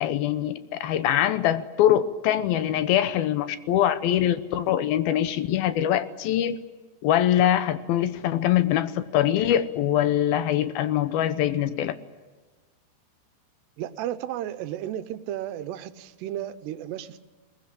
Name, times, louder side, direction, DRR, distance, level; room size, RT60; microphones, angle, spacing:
voice 1, 0.0-6.6 7.0-11.9, left 11 dB, 75° left, 12 dB, 2.6 m, -23 dB
voice 2, 13.8-17.3, right 12 dB, 90° right, 12 dB, 3.0 m, -33 dB
21.5 x 19.5 x 10.0 m, 1.3 s
omnidirectional pair, 4.7 m